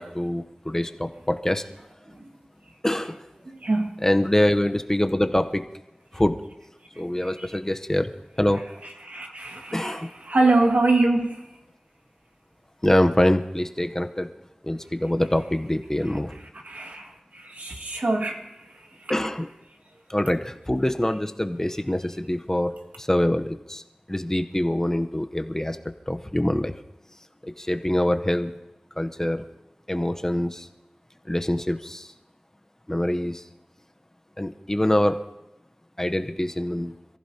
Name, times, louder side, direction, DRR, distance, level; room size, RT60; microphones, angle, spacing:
voice 1, 0.0-1.7 2.8-3.2 4.0-5.6 6.1-6.4 7.0-8.1 8.4-8.6 9.7-10.1 12.8-14.3 14.6-16.3 19.1-19.5 20.1-23.8 24.1-25.8 26.1-26.7 27.4-28.5 29.0-29.4 29.9-30.7 31.3-32.1 32.9-33.4 34.4-35.2 36.0-36.9, left 1 dB, 20° left, 0.8 m, -24 dB
voice 2, 3.6-3.9 7.2-7.5 9.0-11.4 16.6-18.5 19.0-19.1, right 2 dB, 75° right, 1.9 m, -24 dB
27.0 x 15.0 x 2.8 m
wide cardioid pair, 65°, 3 cm